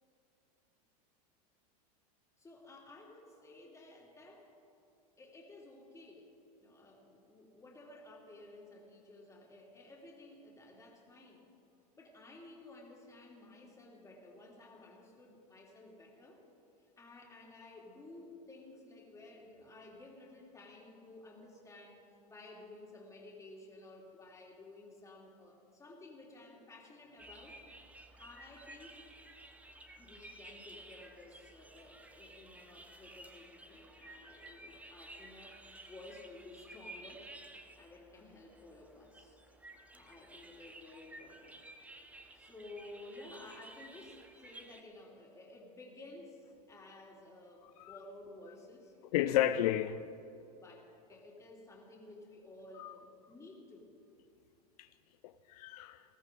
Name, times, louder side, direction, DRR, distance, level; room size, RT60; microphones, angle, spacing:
voice 1, 2.4-4.5 5.2-6.3 6.6-11.4 12.0-16.4 16.8-22.0 22.3-27.6 28.2-29.0 30.0-35.6 35.8-37.3 37.8-39.4 39.9-41.6 42.3-49.0 50.5-53.9, left 2 dB, 15° left, -2 dB, 3.0 m, -54 dB
sound 1, 27.2-44.8, right 2 dB, 5° right, 0.9 m, -54 dB
voice 2, 49.1-50.0 52.8-52.9 54.8-54.9 55.2-56.0, left 12 dB, 70° left, 11 dB, 0.5 m, -32 dB
20.0 x 13.5 x 3.8 m, 2.7 s
hypercardioid pair, 120°, 21 cm